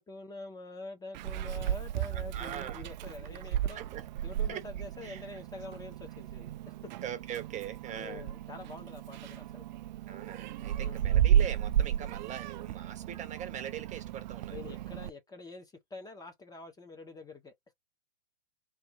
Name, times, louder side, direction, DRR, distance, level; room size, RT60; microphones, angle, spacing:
voice 1, 0.0-3.8 4.2-6.5 7.9-9.6 10.8-11.1 14.5-17.5, left 3 dB, 10° left, 1.0 m, -46 dB
Meow, 1.1-15.1, right 10 dB, 45° right, 0.4 m, -33 dB
voice 2, 2.1-2.8 3.7-4.1 4.5-4.6 5.0-5.4 7.0-8.2 10.1-14.8, right 10 dB, 20° right, 0.9 m, -42 dB
3.4 x 3.0 x 4.6 m
hypercardioid pair, 125°, 33 cm